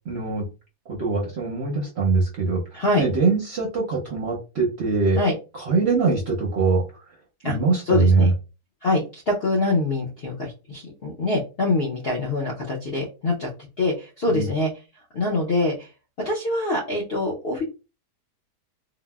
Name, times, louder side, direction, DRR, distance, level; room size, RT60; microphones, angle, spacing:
voice 1, 0.1-0.5 0.9-2.6 3.0-5.2 5.5-6.8 7.4-8.3 14.3-14.5, right 4 dB, 60° right, -1 dB, 0.7 m, -22 dB
voice 2, 2.7-3.1 5.2-5.3 7.4-7.6 7.8-8.3 8.8-13.5 13.8-14.7 15.1-15.9 16.2-17.6, left 2 dB, 60° left, -2 dB, 0.6 m, -24 dB
3.9 x 2.0 x 2.2 m, 0.31 s
omnidirectional pair, 1.8 m